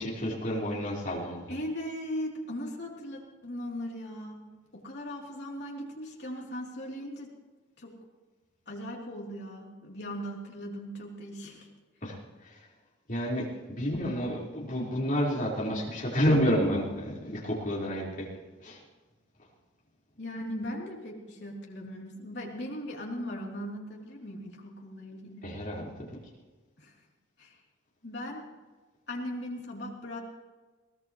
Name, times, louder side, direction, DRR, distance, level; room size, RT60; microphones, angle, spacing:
voice 1, 0.0-1.5 12.0-12.6 13.1-18.3 18.6-18.8 25.4-26.1, equal, 45° left, -5 dB, 4.6 m, -30 dB
voice 2, 1.5-4.4 4.7-7.3 7.8-7.9 8.7-11.7 20.2-25.5 26.8-26.9 27.4-27.6 28.0-28.4 29.1-30.2, equal, 60° left, -2 dB, 3.3 m, -38 dB
22.5 x 18.0 x 3.2 m, 1.3 s
head